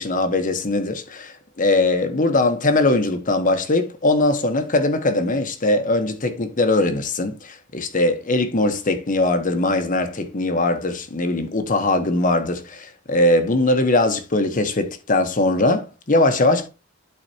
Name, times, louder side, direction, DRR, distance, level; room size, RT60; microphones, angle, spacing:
voice 1, 0.0-16.7, left 2 dB, 40° left, 1.0 m, -20 dB
12.0 x 4.1 x 2.8 m
head